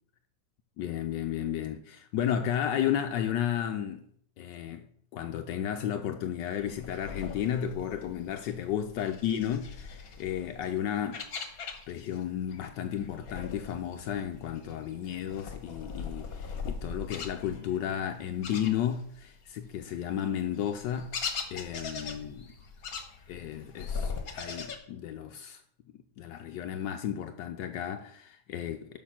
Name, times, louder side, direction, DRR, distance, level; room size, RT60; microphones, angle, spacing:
voice 1, 0.8-4.0 4.4-4.8 5.1-11.2 11.9-21.1 21.5-22.5 23.3-25.6 25.9-29.0, left 10 dB, 75° left, 1.3 m, -33 dB
sound 1, 6.5-12.2 12.5-19.3 19.6-24.8, left 5 dB, 55° left, 1.5 m, -40 dB
6.7 x 5.9 x 5.8 m
omnidirectional pair, 2.0 m